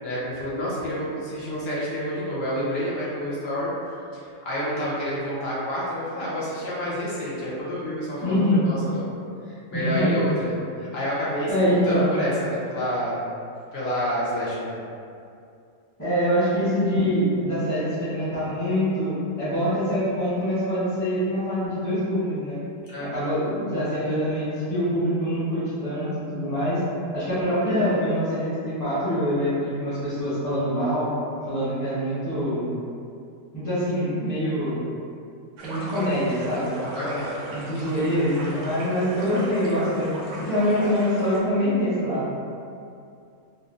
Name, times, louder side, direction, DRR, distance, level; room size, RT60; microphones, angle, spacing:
voice 1, 0.0-3.7 4.1-9.1 9.5-11.5 11.9-13.2 13.7-14.8 22.9-23.1 36.9-37.4, equal, 60° left, -8 dB, 0.8 m, -29 dB
voice 2, 8.2-8.6 9.7-10.2 11.5-12.1 16.0-22.6 23.0-26.8 27.1-31.1 31.5-32.6 33.5-34.8 35.6-36.8 37.5-42.4, equal, 15° left, -14 dB, 0.9 m, -24 dB
sound 1, 35.6-41.4, right 1 dB, 70° right, 0.9 m, -37 dB
3.3 x 2.5 x 2.5 m, 2.4 s
omnidirectional pair, 1.4 m